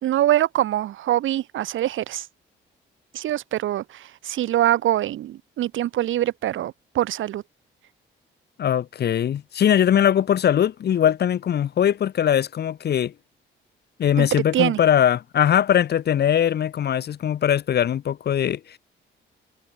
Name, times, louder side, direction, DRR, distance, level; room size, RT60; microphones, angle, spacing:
voice 1, 0.0-2.3 3.1-7.4 14.2-14.3 14.5-14.8, right 13 dB, 80° right, 3.9 m, -24 dB
voice 2, 8.6-13.1 14.0-18.8, left 9 dB, 55° left, 1.1 m, -21 dB
cardioid pair, 90°, 20 cm